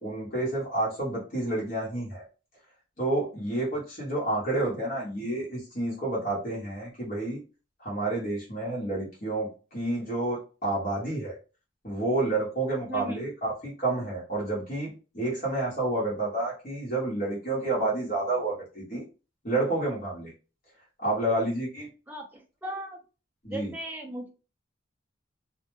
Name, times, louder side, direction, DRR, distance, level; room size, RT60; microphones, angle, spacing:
voice 1, 0.0-2.2 3.0-7.4 7.8-11.4 11.8-19.0 19.4-20.3 21.0-21.9 23.4-23.7, right 2 dB, 40° left, -5 dB, 0.9 m, -29 dB
voice 2, 12.9-13.3 22.1-23.0 23.5-24.3, right 1 dB, 10° right, 2 dB, 0.4 m, -37 dB
2.1 x 2.1 x 3.0 m, 0.33 s
head